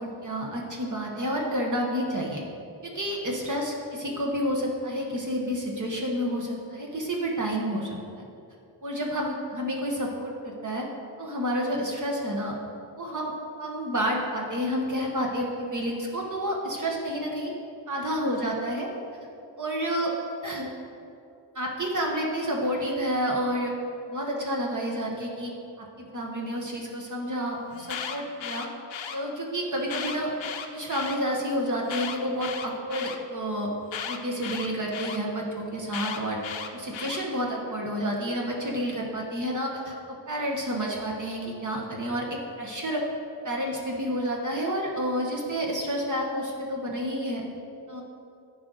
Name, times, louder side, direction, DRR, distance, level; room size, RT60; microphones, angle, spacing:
voice 1, 0.0-2.4 2.8-8.0 8.8-10.9 11.2-12.5 13.0-13.3 13.6-17.5 17.9-18.9 19.6-20.1 20.4-20.7 21.5-23.7 24.1-25.5 25.8-28.7 29.1-30.3 30.7-33.7 34.0-36.4 36.7-43.1 43.4-47.5 47.9-48.0, equal, 40° right, -1 dB, 1.1 m, -29 dB
Alarm, 27.7-29.2 29.8-31.2 31.8-33.2 33.9-35.2 35.9-37.2, left 8 dB, 75° left, 0.8 m, -35 dB
14.0 x 4.9 x 3.8 m, 2.6 s
wide cardioid pair, 135°, 46 cm